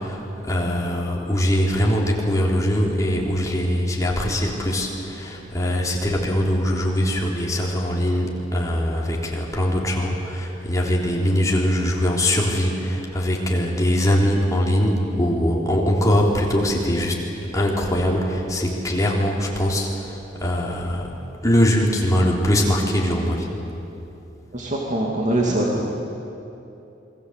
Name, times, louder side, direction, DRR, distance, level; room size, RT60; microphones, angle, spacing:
voice 1, 0.0-17.2 17.5-21.1 21.4-23.5, equal, 20° left, -2 dB, 3.6 m, -22 dB
voice 2, 24.5-25.9, right 1 dB, 40° right, -2 dB, 2.6 m, -23 dB
27.5 x 22.0 x 8.2 m, 2.9 s
head